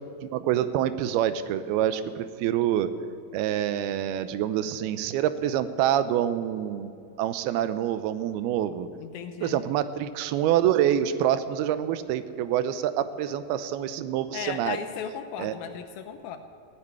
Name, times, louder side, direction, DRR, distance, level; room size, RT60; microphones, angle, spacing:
voice 1, 0.0-2.9 3.3-6.9 7.2-8.9 9.4-14.8 15.4-15.5, right 11 dB, 80° right, 12 dB, 2.5 m, -26 dB
voice 2, 9.0-9.6 14.3-16.4, left 8 dB, 75° left, 7 dB, 2.4 m, -36 dB
16.0 x 8.5 x 9.6 m, 2.5 s
omnidirectional pair, 4.5 m